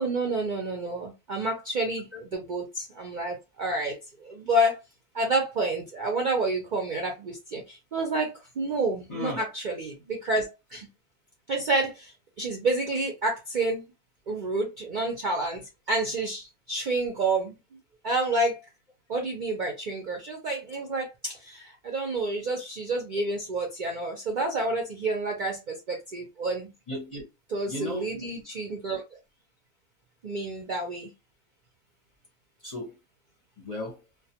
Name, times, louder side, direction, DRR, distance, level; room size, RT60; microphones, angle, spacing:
voice 1, 0.0-4.8 5.1-10.9 11.5-12.1 12.4-13.8 14.3-17.5 18.0-18.6 19.1-26.7 27.5-29.0 30.2-31.1, right 2 dB, 60° right, 0.5 m, -29 dB
voice 2, 9.1-9.4 26.9-27.2 27.7-28.1 32.6-33.0 33.6-34.0, left 1 dB, 40° left, 0.5 m, -35 dB
2.3 x 2.2 x 2.7 m
omnidirectional pair, 1.4 m